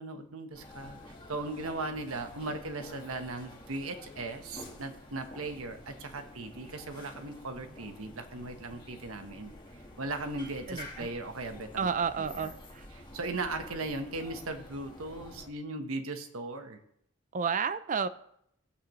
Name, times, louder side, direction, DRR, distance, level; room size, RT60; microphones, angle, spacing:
voice 1, 0.0-9.5 10.0-11.9 12.2-12.5 12.9-16.8, right 2 dB, 70° right, 6 dB, 1.2 m, -38 dB
sound 1, 0.5-15.5, left 1 dB, 20° left, 1.6 m, -49 dB
voice 2, 10.7-11.1 11.8-12.8 17.3-18.1, right 6 dB, 35° right, 13 dB, 0.4 m, -31 dB
17.5 x 8.4 x 3.1 m, 0.73 s
head